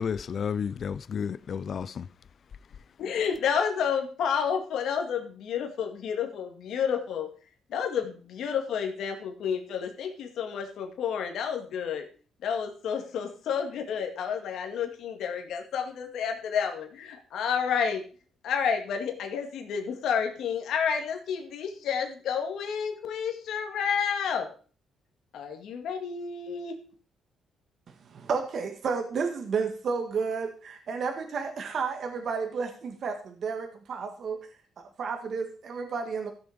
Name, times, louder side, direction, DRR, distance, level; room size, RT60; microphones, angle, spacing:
voice 1, 0.0-2.0, left 7 dB, 50° left, 0.5 m, -31 dB
voice 2, 3.0-7.3 7.7-12.0 12.4-18.0 18.4-24.5 25.3-26.8, left 7 dB, 75° left, 2.3 m, -30 dB
voice 3, 28.1-34.4 34.8-36.3, right 5 dB, 55° right, 1.8 m, -32 dB
14.5 x 7.0 x 5.2 m
cardioid pair, 90°, 0 cm